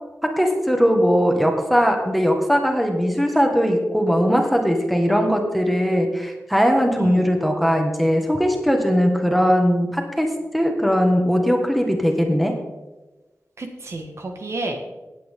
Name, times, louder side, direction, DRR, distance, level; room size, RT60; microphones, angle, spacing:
voice 1, 0.2-12.5, equal, ahead, 2 dB, 1.6 m, -19 dB
voice 2, 13.6-14.8, right 2 dB, 60° right, 4 dB, 1.6 m, -30 dB
17.5 x 8.6 x 3.7 m, 1.1 s
wide cardioid pair, 125°, 5 cm